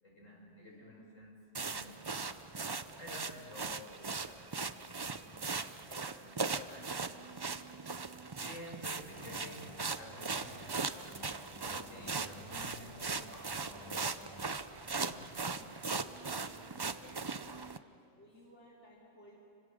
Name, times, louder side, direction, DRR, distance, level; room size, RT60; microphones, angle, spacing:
voice 1, 0.0-2.5 3.0-5.3 5.5-7.2 8.2-11.1 11.6-14.3 14.8-18.2, left 1 dB, 80° left, 0 dB, 4.9 m, -53 dB
voice 2, 0.6-1.0 8.9-9.7 18.2-19.4, equal, 65° left, -4 dB, 3.5 m, -60 dB
sound 1, 1.5-17.8, right 4 dB, 35° right, 0.4 m, -39 dB
sound 2, 9.0-14.5, equal, 15° left, 6.1 m, -54 dB
29.5 x 25.5 x 6.4 m, 2.6 s
omnidirectional pair, 1.3 m